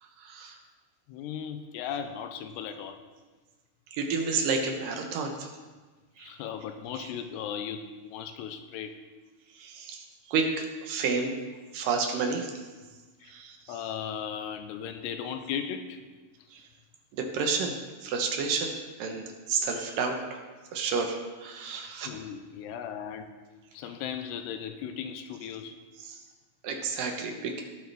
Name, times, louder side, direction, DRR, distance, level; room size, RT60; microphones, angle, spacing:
voice 1, 0.0-0.6 3.9-5.5 6.2-6.4 7.0-7.1 9.5-11.4 11.7-12.7 13.2-13.6 16.5-16.7 17.1-17.8 18.0-20.4 20.7-22.1 26.0-26.2 26.6-27.6, right 4 dB, 70° right, 3 dB, 2.3 m, -31 dB
voice 2, 1.1-3.0 6.2-9.0 13.2-13.3 13.7-16.0 22.0-23.3 23.7-25.8, left 8 dB, 90° left, 7 dB, 2.8 m, -37 dB
18.0 x 8.0 x 3.4 m, 1.3 s
omnidirectional pair, 4.7 m